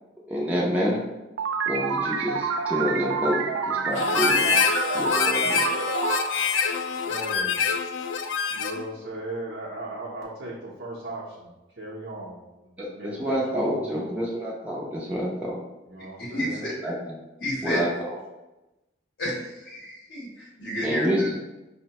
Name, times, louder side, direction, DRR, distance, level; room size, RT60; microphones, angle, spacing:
voice 1, 0.3-1.0 1.6-4.6 4.9-5.8 12.8-15.6 16.6-17.1 17.6-18.2 20.8-21.4, equal, 10° right, -5 dB, 0.5 m, -28 dB
sound 1, 1.4-7.6, right 5 dB, 90° right, 0.3 m, -28 dB
Harmonica, 3.9-8.9, left 6 dB, 80° left, 0.3 m, -25 dB
voice 2, 7.0-7.6 8.5-11.5 11.8-14.1 15.9-16.7, right 1 dB, 65° right, -6 dB, 0.7 m, -37 dB
voice 3, 16.2-16.7 17.4-17.8 19.2-21.3, equal, 55° left, -5 dB, 0.8 m, -30 dB
5.3 x 2.1 x 2.8 m, 1.0 s
head